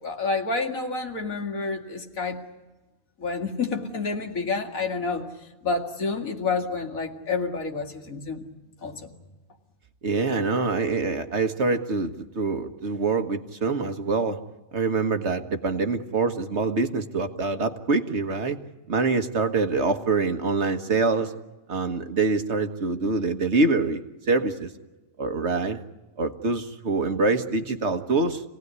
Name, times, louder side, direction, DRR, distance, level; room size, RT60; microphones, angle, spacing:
voice 1, 0.0-2.4 3.2-5.3 5.6-8.4 8.8-9.1, left 4 dB, 85° left, 4 dB, 2.6 m, -29 dB
voice 2, 10.0-14.4 14.7-18.6 18.9-21.3 21.7-24.7 25.2-25.8 26.2-28.4, right 3 dB, 55° right, 8 dB, 1.7 m, -25 dB
27.0 x 18.5 x 9.6 m, 1.2 s
omnidirectional pair, 1.4 m